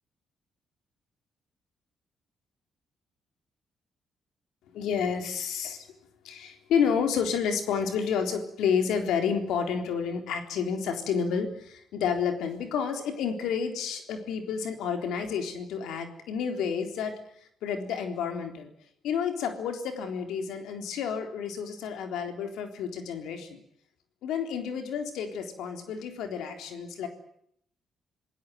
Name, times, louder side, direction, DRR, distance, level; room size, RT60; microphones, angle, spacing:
voice 1, 4.7-5.9 6.2-17.2 17.6-18.7 19.0-23.6 24.2-27.1, left 7 dB, 85° left, 5 dB, 3.9 m, -30 dB
27.0 x 16.5 x 9.4 m, 0.71 s
cardioid pair, 90°, 0 cm